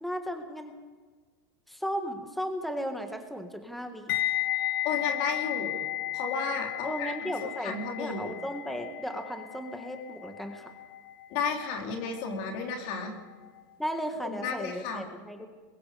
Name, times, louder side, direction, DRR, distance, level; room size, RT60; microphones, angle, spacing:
voice 1, 0.0-0.8 1.7-4.1 6.8-10.7 13.8-15.5, equal, ahead, 5 dB, 1.7 m, -35 dB
sound 1, 4.1-13.1 13.3-13.6, left 14 dB, 85° left, 1.3 m, -34 dB
voice 2, 4.8-5.8 6.1-8.3 11.3-13.1 14.2-15.1, left 5 dB, 60° left, 2 dB, 3.8 m, -33 dB
23.0 x 22.0 x 5.1 m, 1.4 s
supercardioid pair, 135°, 11 cm